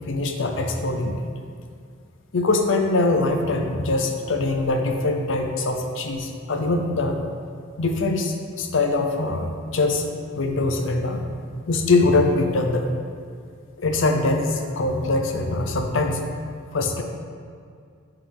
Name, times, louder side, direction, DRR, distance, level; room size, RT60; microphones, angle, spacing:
voice 1, 0.1-1.3 2.3-7.2 7.8-10.1 10.4-11.3 11.7-12.9 13.8-16.2 16.7-17.0, left 2 dB, 70° left, 4 dB, 0.6 m, -23 dB
9.0 x 3.5 x 3.4 m, 2.3 s
head